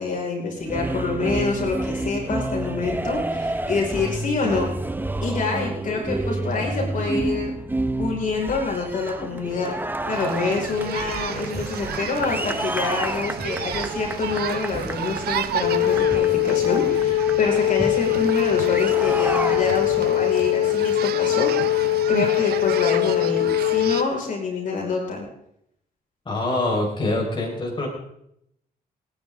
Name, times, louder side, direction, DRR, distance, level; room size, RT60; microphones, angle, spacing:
voice 1, 0.0-4.7 5.2-7.5 8.0-9.8 10.1-25.3, left 4 dB, 55° left, -1 dB, 5.3 m, -27 dB
sound 1, 0.6-20.1, right 2 dB, 10° right, 1.1 m, -30 dB
sound 2, 10.1-24.0, right 10 dB, 85° right, 1.0 m, -33 dB
Wind instrument woodwind instrument, 15.6-24.1, left 14 dB, 85° left, 0.5 m, -21 dB
voice 2, 26.2-27.9, left 2 dB, 30° left, -2 dB, 4.9 m, -24 dB
29.0 x 10.0 x 3.7 m, 0.76 s
cardioid pair, 90°, 16 cm